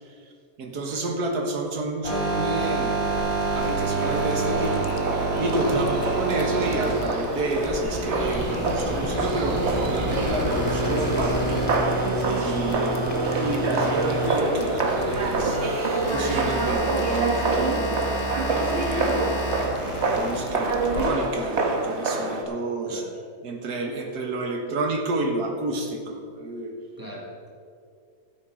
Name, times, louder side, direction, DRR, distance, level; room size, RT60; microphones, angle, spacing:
voice 1, 0.6-3.0 3.5-4.9 5.4-11.7 12.2-13.1 13.4-15.6 16.1-18.1 19.3-23.0 23.4-26.7, right 2 dB, 75° right, 2 dB, 1.9 m, -29 dB
sound 1, 2.0-20.4, right 2 dB, 15° left, 3.5 m, -28 dB
Boiling, 3.0-21.0, left 4 dB, 65° left, 1.2 m, -40 dB
sound 2, 4.0-22.4, right 3 dB, 50° right, 1.3 m, -27 dB
voice 2, 5.7-6.0 12.9-13.3 22.9-23.1 27.0-27.5, right 1 dB, 15° right, -3 dB, 2.2 m, -39 dB
12.5 x 8.8 x 5.0 m, 2.3 s
omnidirectional pair, 1.7 m